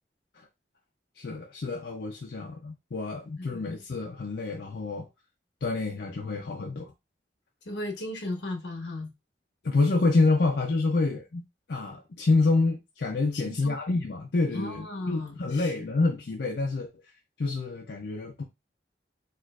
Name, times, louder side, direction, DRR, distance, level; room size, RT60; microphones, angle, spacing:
voice 1, 1.2-5.1 5.6-6.9 9.6-11.4 11.7-17.0 17.4-18.4, left 3 dB, 60° left, 0.5 m, -27 dB
voice 2, 7.7-9.1 13.4-13.8 14.5-15.7, left 2 dB, 80° left, 0.9 m, -36 dB
4.4 x 2.5 x 2.3 m
head